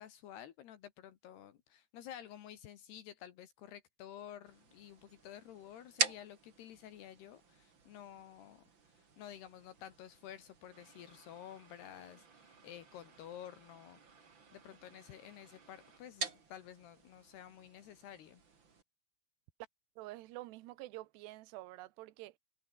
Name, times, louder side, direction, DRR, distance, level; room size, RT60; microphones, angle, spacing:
voice 1, 0.0-8.6 9.0-14.3 14.5-18.4, left 10 dB, 70° left, 3.5 m, -52 dB
sound 1, 4.5-18.8, right 5 dB, 30° right, 2.9 m, -45 dB
voice 2, 20.0-22.4, right 17 dB, 80° right, 2.9 m, -48 dB
omnidirectional pair, 5.1 m